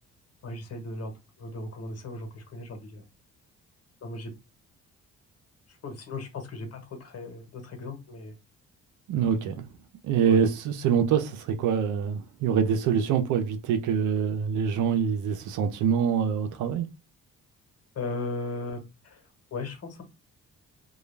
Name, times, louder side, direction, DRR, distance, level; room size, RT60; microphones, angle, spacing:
voice 1, 0.4-1.1 1.4-3.0 4.0-4.3 5.8-8.3 10.2-10.4 17.9-19.2 19.5-20.0, left 2 dB, 55° left, 1.1 m, -36 dB
voice 2, 9.1-9.6 10.0-16.9, right 7 dB, 85° right, 0.6 m, -25 dB
2.3 x 2.2 x 3.2 m
cardioid pair, 90°, 30 cm